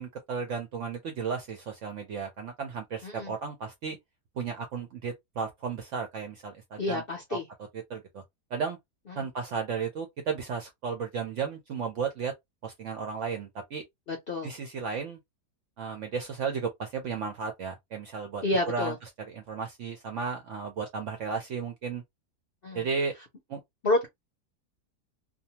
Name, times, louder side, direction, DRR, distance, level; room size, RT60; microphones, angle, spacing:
voice 1, 0.0-4.0 4.4-7.0 7.3-7.4 7.7-8.2 8.5-8.8 9.2-12.3 12.6-13.8 14.4-15.2 15.8-22.0 22.7-23.1 23.5-23.6, right 5 dB, 70° right, 0.7 m, -34 dB
voice 2, 3.0-3.3 6.8-7.4 9.1-9.3 14.1-14.5 18.4-19.0 22.6-22.9 23.8-24.1, left 2 dB, 60° left, 0.6 m, -29 dB
2.6 x 2.2 x 2.8 m
omnidirectional pair, 1.8 m